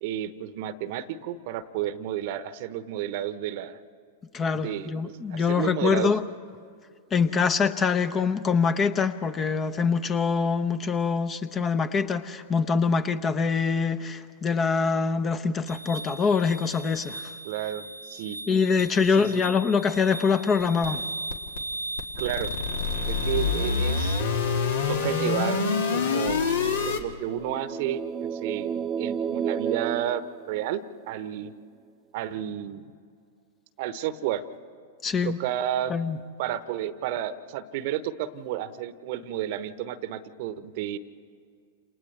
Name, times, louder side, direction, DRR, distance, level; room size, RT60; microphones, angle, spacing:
voice 1, 0.0-3.8 4.5-6.1 17.4-18.4 19.2-19.4 22.2-22.5 23.1-24.2 24.9-26.5 26.9-31.5 32.1-32.9 33.8-34.4 35.2-35.9 36.4-41.0, right 11 dB, 50° right, 13 dB, 1.0 m, -31 dB
voice 2, 4.3-6.2 7.1-17.3 18.5-21.0 35.0-35.4 35.9-36.2, left 5 dB, 25° left, 12 dB, 0.9 m, -24 dB
sound 1, 15.7-27.0, left 4 dB, 70° left, 1.8 m, -29 dB
sound 2, 27.2-31.1, right 7 dB, 20° right, 0.5 m, -32 dB
29.5 x 28.0 x 3.4 m, 2.3 s
figure-of-eight pair, 95°, 0 cm